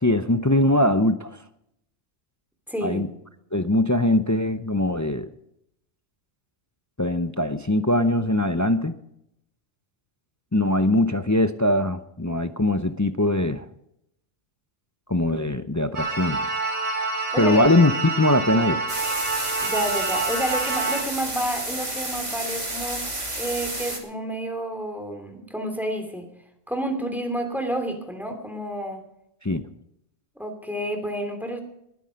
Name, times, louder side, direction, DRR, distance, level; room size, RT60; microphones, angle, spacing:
voice 1, 0.0-1.4 2.8-3.1 3.5-5.3 7.0-8.9 10.5-13.7 15.1-16.4 17.4-18.8 29.4-29.6, left 1 dB, 25° left, 10 dB, 0.4 m, -21 dB
voice 2, 2.7-3.0 17.3-17.6 19.6-26.3 26.7-29.0 30.4-31.6, right 1 dB, ahead, 4 dB, 2.7 m, -30 dB
sound 1, 15.9-21.0, right 3 dB, 60° right, 3.5 m, -27 dB
sound 2, 18.9-24.0, right 1 dB, 35° right, 2.8 m, -31 dB
20.5 x 9.8 x 5.1 m, 0.79 s
omnidirectional pair, 1.3 m